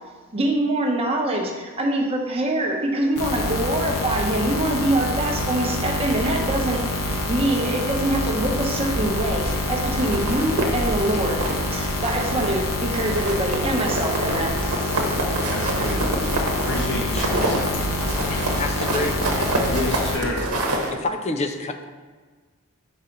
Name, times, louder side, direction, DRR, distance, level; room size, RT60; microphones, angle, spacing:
voice 1, 0.3-15.1, right 1 dB, 25° right, 0 dB, 0.9 m, -24 dB
sound 1, 3.2-20.2, left 1 dB, 75° left, 0.9 m, -26 dB
sound 2, 10.0-11.7 12.0-12.6 12.9-20.9, right 1 dB, 80° right, 1.0 m, -27 dB
voice 2, 15.4-16.1 16.6-17.7 19.7-20.5, left 1 dB, 55° left, -2 dB, 1.4 m, -29 dB
voice 3, 18.5-19.1 21.0-21.9, left 2 dB, 30° left, 7 dB, 0.4 m, -28 dB
5.2 x 4.0 x 5.8 m, 1.4 s
head